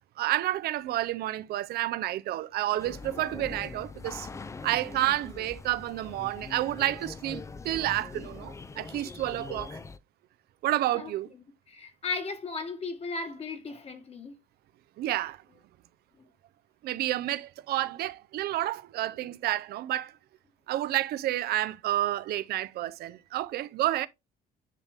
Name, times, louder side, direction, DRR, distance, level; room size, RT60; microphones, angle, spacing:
voice 1, 0.2-4.3 4.6-9.8 10.6-11.3 15.0-15.4 16.8-20.2 20.7-24.1, right 14 dB, 70° right, 0.6 m, -30 dB
sound 1, 2.8-10.0, left 4 dB, 15° left, 0.4 m, -42 dB
voice 2, 11.7-14.4, left 4 dB, 35° left, 1.6 m, -36 dB
9.8 x 3.3 x 3.5 m
cardioid pair, 110°, 17 cm